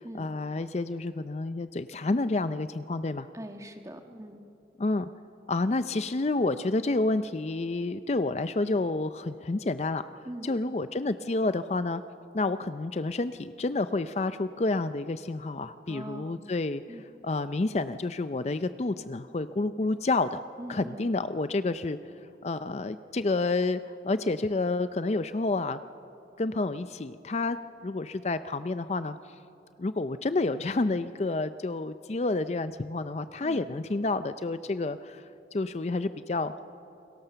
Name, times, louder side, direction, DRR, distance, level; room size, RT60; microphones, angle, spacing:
voice 1, 0.0-3.3 4.8-5.1 5.5-10.0 10.4-12.0 12.3-20.4 20.7-22.0 22.4-25.8 26.4-27.6 27.8-29.2 29.8-35.2 35.5-36.5, left 2 dB, 35° left, 12 dB, 0.5 m, -29 dB
voice 2, 3.3-4.4 10.2-10.5 15.9-16.4 16.9-17.0 20.6-21.1 33.4-33.7, right 1 dB, 20° right, 5 dB, 1.4 m, -42 dB
29.0 x 22.0 x 6.8 m, 2.8 s
head